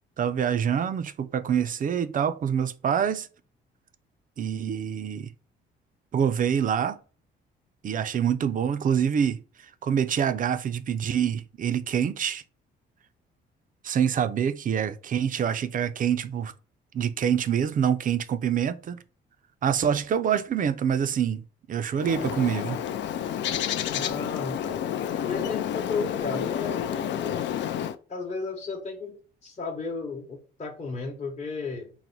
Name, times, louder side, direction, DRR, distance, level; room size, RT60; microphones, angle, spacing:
voice 1, 0.2-3.3 4.4-5.3 6.1-7.0 7.8-9.4 9.8-12.4 13.8-16.5 16.9-19.0 19.6-22.8, right 8 dB, 45° right, 0.4 m, -26 dB
Bird, 22.0-28.0, left 10 dB, 65° left, 0.4 m, -30 dB
voice 2, 23.9-24.8 25.2-27.5 28.1-31.9, left 4 dB, 35° left, 0.9 m, -34 dB
3.9 x 2.1 x 4.4 m
cardioid pair, 90°, 20 cm